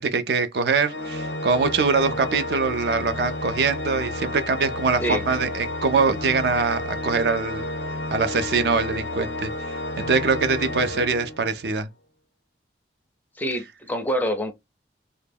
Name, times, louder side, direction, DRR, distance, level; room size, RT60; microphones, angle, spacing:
voice 1, 0.0-7.6 8.1-9.5 10.0-11.9, right 4 dB, 65° right, 0.4 m, -23 dB
Organ, 0.9-11.7, left 1 dB, 85° left, 0.5 m, -31 dB
voice 2, 13.4-14.5, equal, 10° left, 0.4 m, -26 dB
2.1 x 2.1 x 3.2 m
head